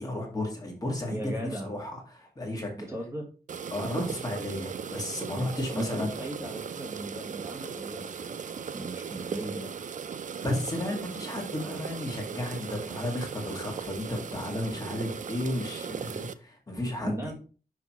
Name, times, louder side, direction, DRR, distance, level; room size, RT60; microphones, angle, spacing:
voice 1, 0.0-1.2 1.6-2.7 3.7-6.1 10.4-17.3, left 1 dB, 25° left, 0 dB, 2.0 m, -33 dB
voice 2, 1.1-1.7 2.8-3.3 5.7-8.4 8.7-9.7 17.0-17.3, right 1 dB, 15° right, -1 dB, 1.3 m, -37 dB
sound 1, 3.5-16.3, right 7 dB, 55° right, 0.4 m, -38 dB
6.1 x 5.7 x 3.0 m, 0.37 s
wide cardioid pair, 135°, 16 cm